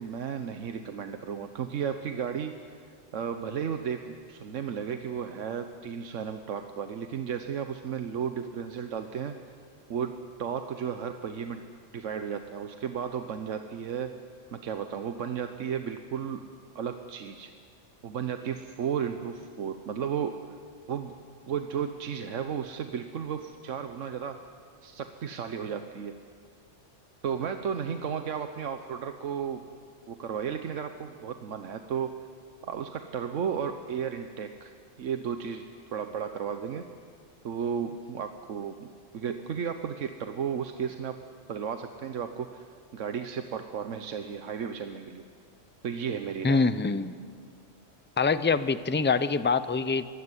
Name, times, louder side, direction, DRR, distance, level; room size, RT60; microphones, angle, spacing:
voice 1, 0.0-2.6 3.1-9.4 9.9-11.6 11.9-14.1 14.5-16.5 16.7-17.5 18.0-20.4 20.9-21.1 21.5-24.4 24.8-26.2 27.2-29.7 30.1-32.2 32.6-34.7 35.0-36.9 37.4-38.9 39.1-41.2 41.5-42.7 42.9-45.2 45.8-46.7, right 7 dB, 80° right, 7 dB, 1.2 m, -34 dB
voice 2, 46.4-47.1 48.2-50.1, left 4 dB, 15° left, 13 dB, 0.4 m, -25 dB
22.5 x 16.5 x 9.8 m, 2.1 s
omnidirectional pair, 1.3 m